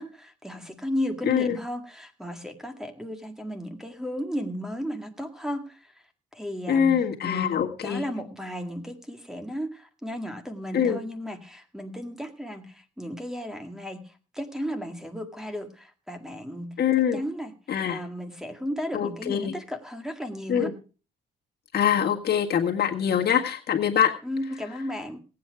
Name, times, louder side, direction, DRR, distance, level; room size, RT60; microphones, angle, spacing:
voice 1, 0.0-5.9 6.3-7.6 7.8-16.8 17.1-17.5 17.9-20.7 24.2-25.2, equal, ahead, 7 dB, 1.9 m, -34 dB
voice 2, 1.2-1.6 6.7-8.0 10.7-11.0 16.8-17.2 17.7-18.0 18.9-19.5 20.5-20.7 21.7-24.1, left 8 dB, 55° left, 2 dB, 1.7 m, -24 dB
18.0 x 8.5 x 4.7 m, 0.36 s
cardioid pair, 90°, 20 cm